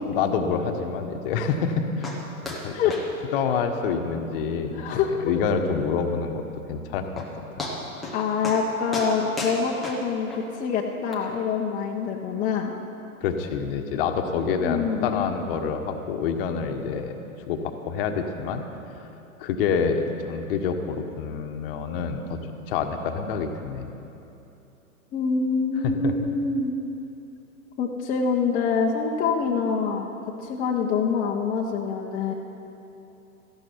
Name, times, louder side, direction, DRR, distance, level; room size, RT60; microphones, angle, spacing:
voice 1, 0.1-2.2 2.4-2.7 3.3-6.4 6.7-7.2 7.6-7.7 13.2-17.1 17.5-18.7 19.4-22.4 22.7-23.9 25.8-26.1, left 6 dB, 40° left, 6 dB, 1.2 m, -27 dB
sound 1, 2.0-2.2 2.5-2.6 2.9-3.1 3.3-3.5 3.9-4.0 4.4-4.5 4.9-5.0 6.7-6.8 7.2-7.3 7.6-8.2 8.4-8.6 8.9-10.4 11.1-11.2, left 1 dB, ahead, 0.3 m, -34 dB
voice 2, 4.7-5.3 8.1-12.7 14.6-15.3 25.1-26.8 27.8-30.1 30.4-32.3, left 5 dB, 20° left, 0 dB, 0.8 m, -25 dB
17.0 x 14.0 x 4.6 m, 2.9 s
figure-of-eight pair, 110°, 44 cm